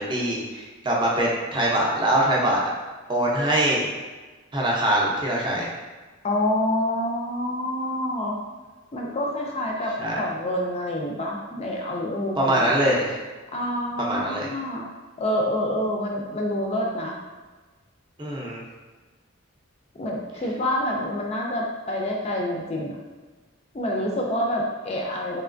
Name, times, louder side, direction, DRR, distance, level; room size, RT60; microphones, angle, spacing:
voice 1, 0.0-2.6 3.1-3.8 4.5-5.7 10.0-10.2 12.4-13.1 14.0-14.5 18.2-18.6, right 1 dB, 25° right, -4 dB, 0.6 m, -23 dB
voice 2, 6.2-8.4 8.9-12.9 13.5-14.9 15.2-17.1 20.0-22.9 23.7-25.4, left 1 dB, 30° left, 0 dB, 0.4 m, -27 dB
3.2 x 2.9 x 2.5 m, 1.3 s
head